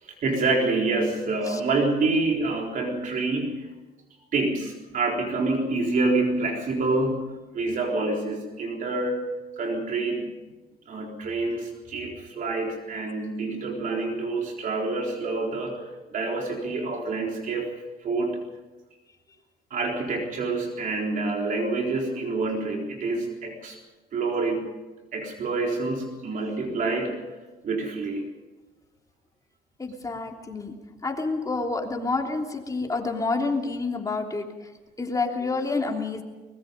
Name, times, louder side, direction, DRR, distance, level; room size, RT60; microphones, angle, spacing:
voice 1, 0.0-3.7 4.3-10.3 10.9-17.8 18.0-18.4 19.7-23.8 24.1-24.8 25.1-27.4 27.6-28.3, right 3 dB, 50° right, 1 dB, 4.0 m, -27 dB
voice 2, 29.8-30.7 31.0-34.5 35.0-36.2, left 3 dB, 20° left, 2 dB, 3.2 m, -28 dB
23.5 x 21.0 x 5.3 m, 1.2 s
cardioid pair, 110°, 17 cm